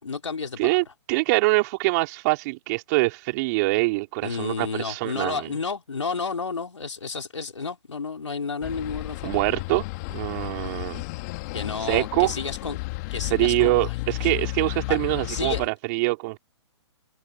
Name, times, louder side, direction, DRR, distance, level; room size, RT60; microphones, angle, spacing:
voice 1, 0.0-0.8 4.2-9.2 11.5-12.8 13.1-13.9 14.2-14.3 14.9-15.0 15.3-15.6, left 5 dB, 80° left, 3.7 m, -31 dB
voice 2, 0.6-5.5 9.2-9.8 10.1-11.0 11.9-12.3 13.3-16.4, right 24 dB, 35° right, 4.1 m, -24 dB
sound 1, 8.6-15.7, left 24 dB, 35° left, 2.1 m, -32 dB
figure-of-eight pair, 125°, 15 cm